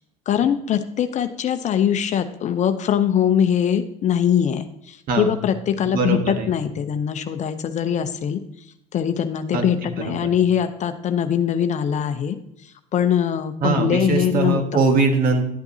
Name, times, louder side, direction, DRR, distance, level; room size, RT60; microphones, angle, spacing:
voice 1, 0.3-8.4 8.9-12.4 12.9-14.6, left 9 dB, 40° left, 9 dB, 0.7 m, -22 dB
voice 2, 5.8-6.5 9.5-10.3 13.6-15.5, right 4 dB, 50° right, 5 dB, 1.6 m, -22 dB
11.0 x 7.9 x 2.7 m, 0.78 s
hypercardioid pair, 85°, 18 cm